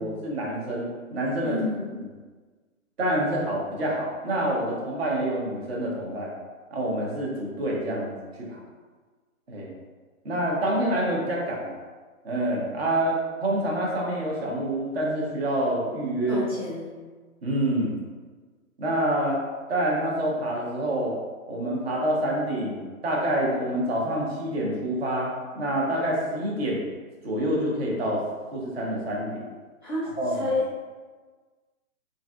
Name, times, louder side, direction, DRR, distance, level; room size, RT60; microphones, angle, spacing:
voice 1, 0.0-1.6 3.0-6.3 6.7-8.1 8.4-8.6 9.5-9.7 10.2-11.8 12.2-16.4 17.4-17.9 18.8-19.4 19.7-21.1 21.5-26.8 27.2-28.2 28.5-29.5 30.2-30.6, right 1 dB, 45° right, -3 dB, 0.8 m, -27 dB
voice 2, 1.4-1.9 16.3-16.9 29.8-30.1 30.4-30.6, left 2 dB, 20° right, -11 dB, 0.4 m, -29 dB
3.3 x 2.6 x 2.3 m, 1.4 s
hypercardioid pair, 160°, 42 cm